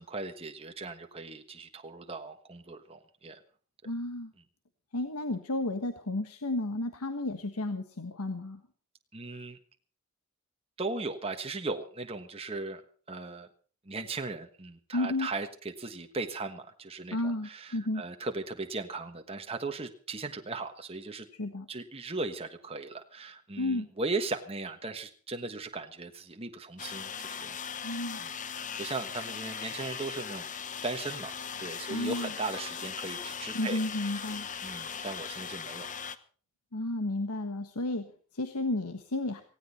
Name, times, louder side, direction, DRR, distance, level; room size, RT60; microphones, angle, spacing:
voice 1, 0.0-3.4 9.1-9.6 10.8-12.8 13.1-13.5 13.8-21.3 21.7-27.6 27.8-28.3 28.8-30.5 30.8-35.9, right 3 dB, 25° right, 5 dB, 1.3 m, -38 dB
voice 2, 3.8-4.3 4.9-8.6 14.9-15.3 17.1-18.0 21.3-21.7 23.6-23.9 27.8-28.2 31.9-32.3 33.5-34.5 36.7-39.4, left 2 dB, 90° left, 8 dB, 1.4 m, -32 dB
sound 1, 26.8-36.2, left 7 dB, 35° left, 1.0 m, -39 dB
18.0 x 17.0 x 4.2 m, 0.41 s
head